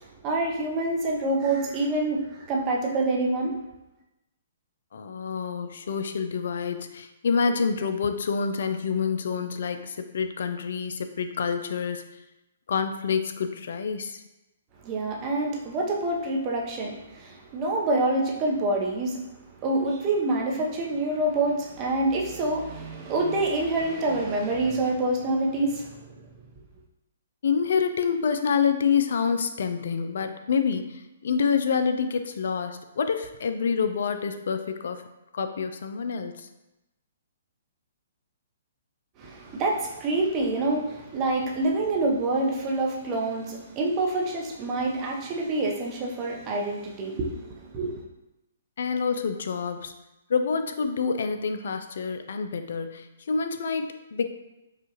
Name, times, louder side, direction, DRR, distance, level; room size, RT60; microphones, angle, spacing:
voice 1, 0.2-3.6 14.8-19.2 19.6-26.1 39.2-48.0, right 2 dB, 30° right, -1 dB, 0.8 m, -26 dB
voice 2, 4.9-12.1 12.7-14.2 27.4-35.0 35.3-36.5 48.8-49.9 50.3-54.3, left 6 dB, 65° left, 8 dB, 0.4 m, -27 dB
4.8 x 2.4 x 2.9 m, 0.94 s
hypercardioid pair, 130°, 0 cm